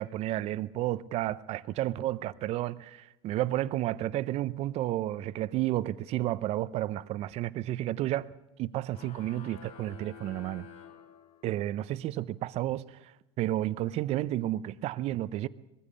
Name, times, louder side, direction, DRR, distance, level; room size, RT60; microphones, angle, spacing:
voice 1, 0.0-8.3 8.6-10.7 11.4-15.5, right 14 dB, 50° right, 0.6 m, -31 dB
sound 1, 8.9-11.8, left 8 dB, 50° left, 1.9 m, -50 dB
20.5 x 15.5 x 8.5 m
supercardioid pair, 95°, 14 cm